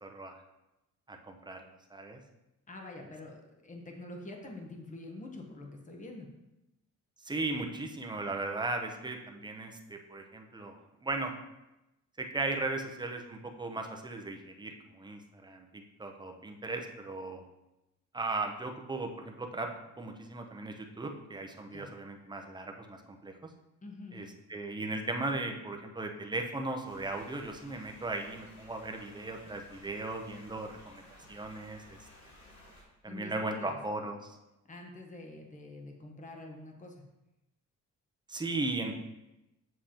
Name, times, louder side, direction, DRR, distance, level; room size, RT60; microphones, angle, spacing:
voice 1, 0.0-0.4 1.1-2.2 7.2-11.3 12.2-17.4 18.1-19.7 20.0-23.5 24.1-31.0 31.3-32.0 33.0-34.4 38.3-39.0, right 2 dB, 15° right, 3 dB, 0.7 m, -37 dB
voice 2, 2.7-6.3 21.7-21.9 23.8-24.3 33.0-33.8 34.7-37.0, left 2 dB, 25° left, 1 dB, 1.1 m, -46 dB
sound 1, 26.9-32.8, left 1 dB, 65° left, 2.7 m, -56 dB
7.5 x 6.5 x 2.9 m, 0.96 s
wide cardioid pair, 150°, 30 cm